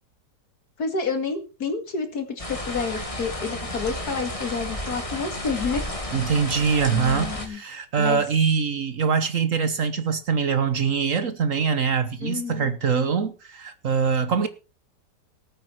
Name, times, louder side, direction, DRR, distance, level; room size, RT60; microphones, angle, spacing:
voice 1, 0.8-5.8 6.1-6.3 6.9-7.6 8.0-8.2 12.2-12.8, left 5 dB, 60° left, 2.6 m, -29 dB
sound 1, 2.4-7.5, left 1 dB, 20° left, 2.3 m, -32 dB
voice 2, 6.1-14.5, right 6 dB, 55° right, 1.3 m, -23 dB
19.5 x 8.8 x 4.4 m
omnidirectional pair, 1.9 m